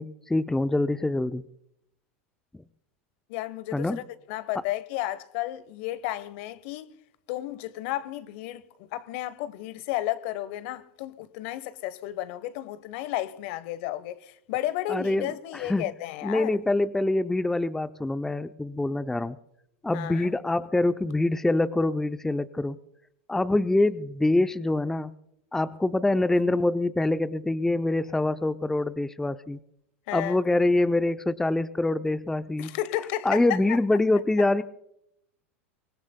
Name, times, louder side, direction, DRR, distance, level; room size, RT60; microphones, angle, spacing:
voice 1, 0.0-1.4 3.7-4.0 14.9-15.8 16.2-19.4 19.8-22.8 23.3-25.1 25.5-29.6 30.1-32.7 33.2-34.6, left 2 dB, 5° left, 0.5 m, -25 dB
voice 2, 3.3-6.9 7.3-16.5 19.9-20.3 30.1-30.4 32.6-33.4 33.7-33.8, left 14 dB, 60° left, 0.9 m, -33 dB
24.0 x 19.5 x 2.2 m
hypercardioid pair, 105°, 7 cm